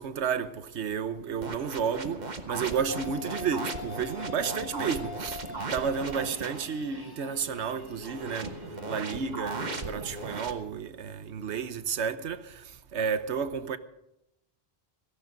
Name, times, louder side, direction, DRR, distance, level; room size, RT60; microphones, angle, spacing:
voice 1, 0.0-8.5 8.9-12.4 12.9-13.8, right 6 dB, 85° right, 1.2 m, -31 dB
sound 1, 1.4-6.7 8.0-10.5, right 3 dB, 40° right, 1.3 m, -37 dB
sound 2, 2.9-10.4, left 6 dB, 20° left, 1.7 m, -44 dB
17.0 x 15.0 x 5.2 m
omnidirectional pair, 1.1 m